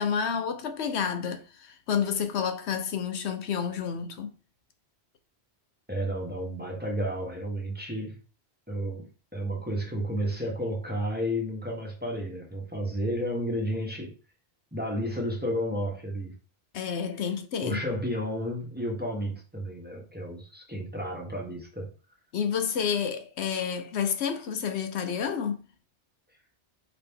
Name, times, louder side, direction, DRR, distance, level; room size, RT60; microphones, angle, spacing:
voice 1, 0.0-4.3 16.7-17.8 22.3-25.6, left 7 dB, 80° left, 1.0 m, -29 dB
voice 2, 5.9-8.2 8.7-14.1 14.7-16.3 17.6-21.9, equal, 10° right, 1.1 m, -32 dB
4.8 x 2.9 x 3.5 m
omnidirectional pair, 1.1 m